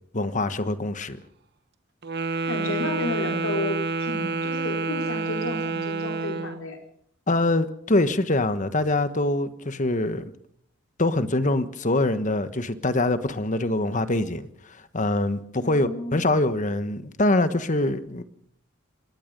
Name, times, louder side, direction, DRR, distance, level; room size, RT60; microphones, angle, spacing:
voice 1, 0.1-1.2 7.3-10.2 11.0-18.2, left 2 dB, 40° left, 1.3 m, -24 dB
Wind instrument woodwind instrument, 2.0-6.6, right 3 dB, 55° right, 1.3 m, -28 dB
voice 2, 2.5-6.8 15.6-16.3, left 1 dB, 85° left, 4.8 m, -32 dB
25.5 x 20.0 x 5.4 m
head